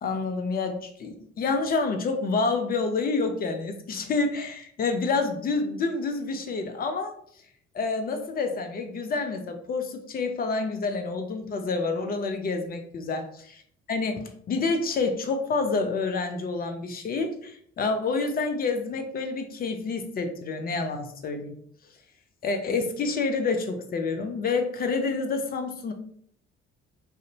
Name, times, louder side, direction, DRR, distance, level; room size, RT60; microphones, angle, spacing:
voice 1, 0.0-7.2 7.7-13.2 13.9-21.6 22.4-25.9, left 4 dB, 30° left, 6 dB, 0.4 m, -28 dB
2.5 x 2.0 x 2.8 m, 0.64 s
figure-of-eight pair, 45°, 33 cm